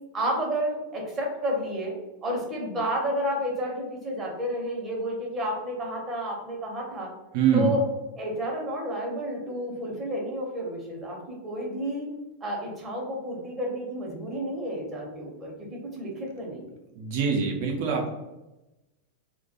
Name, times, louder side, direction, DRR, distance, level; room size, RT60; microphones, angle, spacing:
voice 1, 0.1-1.9 2.2-7.1 7.5-7.8 8.2-12.1 12.4-16.7, equal, 25° right, -1 dB, 0.8 m, -31 dB
voice 2, 7.3-7.7 17.0-18.1, right 6 dB, 45° right, 2 dB, 0.5 m, -24 dB
2.1 x 2.1 x 2.8 m, 1.0 s
figure-of-eight pair, 90°, 0 cm